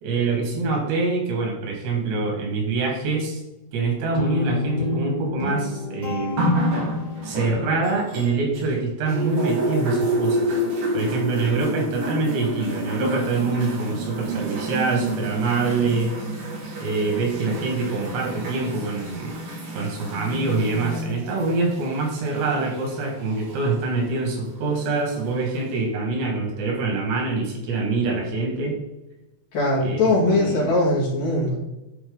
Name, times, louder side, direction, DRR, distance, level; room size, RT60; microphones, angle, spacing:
voice 1, 0.0-3.4 3.7-6.6 7.2-10.6 10.9-16.2 16.8-19.4 19.7-28.8 29.8-30.6, right 3 dB, 90° right, 1 dB, 4.2 m, -25 dB
Guitar, 4.1-7.4, left 3 dB, 10° left, 2.2 m, -29 dB
sound 1, 6.4-8.7 9.1-23.8 24.7-24.8, right 1 dB, 55° right, 3.6 m, -29 dB
voice 2, 29.5-31.6, left 2 dB, 60° left, -4 dB, 3.5 m, -21 dB
11.5 x 4.3 x 4.0 m, 0.97 s
omnidirectional pair, 4.8 m